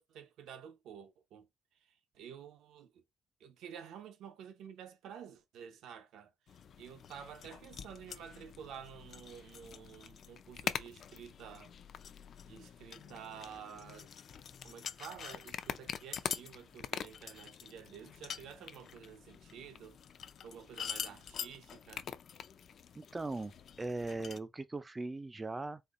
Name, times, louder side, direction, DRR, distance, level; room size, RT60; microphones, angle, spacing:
voice 1, 0.0-1.5 1.8-3.0 3.4-11.7 12.5-14.1 14.6-20.0 20.4-22.1, right 8 dB, 85° right, 0.8 m, -51 dB
sound 1, 6.5-24.4, left 8 dB, 60° left, 0.4 m, -45 dB
voice 2, 22.9-23.5 23.8-25.8, right 3 dB, 20° right, 0.4 m, -39 dB
4.2 x 2.6 x 2.5 m
cardioid pair, 90°, 0 cm